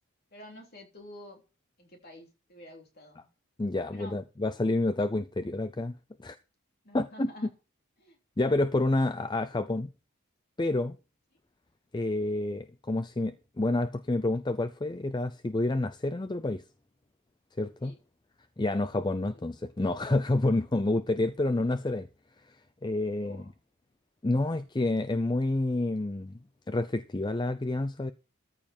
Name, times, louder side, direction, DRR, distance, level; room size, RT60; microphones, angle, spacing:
voice 1, 0.3-1.4 1.8-3.3 3.9-4.2 6.8-7.5 8.0-8.2 17.8-18.0 19.3-19.7 23.2-23.5, left 1 dB, 45° left, 3.2 m, -49 dB
voice 2, 3.6-6.4 6.9-7.5 8.4-9.9 10.6-11.0 11.9-16.6 17.6-17.9 18.6-22.1 22.5-22.6 22.8-23.4 24.2-26.4 26.7-28.1, left 2 dB, 20° left, 0.5 m, -29 dB
14.0 x 7.4 x 4.3 m
head